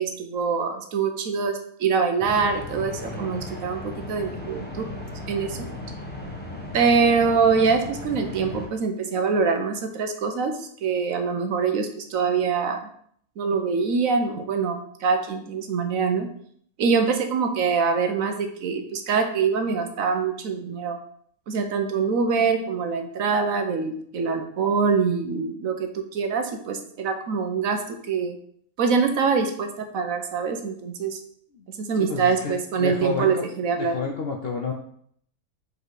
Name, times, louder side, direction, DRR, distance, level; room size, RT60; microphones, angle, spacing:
voice 1, 0.0-4.9 5.3-5.7 6.7-12.9 13.4-16.3 16.8-21.0 21.5-28.4 28.8-31.2 31.8-34.0, right 5 dB, 65° right, 6 dB, 1.1 m, -24 dB
sound 1, 2.2-8.7, left 1 dB, 10° left, 0.9 m, -36 dB
voice 2, 32.0-33.5 33.8-34.7, left 4 dB, 60° left, 1 dB, 0.6 m, -30 dB
5.0 x 4.3 x 4.7 m, 0.63 s
omnidirectional pair, 1.6 m